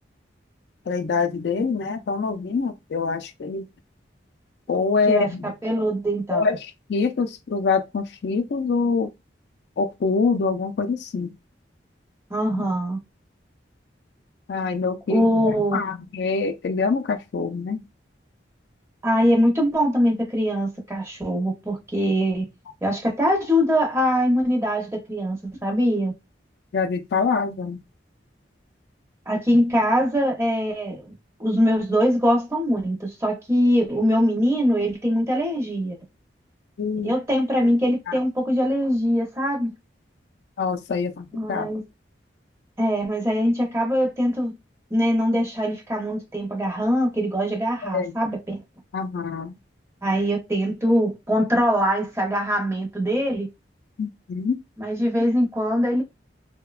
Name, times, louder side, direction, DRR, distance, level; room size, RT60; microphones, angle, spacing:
voice 1, 0.9-3.7 4.7-5.5 6.3-9.1 9.8-11.3 12.5-12.7 14.5-17.8 26.7-27.8 36.8-37.1 40.6-41.7 47.9-48.1 48.9-49.5 54.0-54.6, left 4 dB, 65° left, 0.3 m, -25 dB
voice 2, 5.1-6.4 12.3-13.0 15.1-15.8 19.0-22.5 22.8-26.1 29.3-31.1 31.4-36.0 37.0-39.7 41.3-41.8 42.8-44.5 44.9-48.6 50.0-53.5 54.8-56.0, equal, 15° right, 0.6 m, -22 dB
2.7 x 2.1 x 2.3 m
head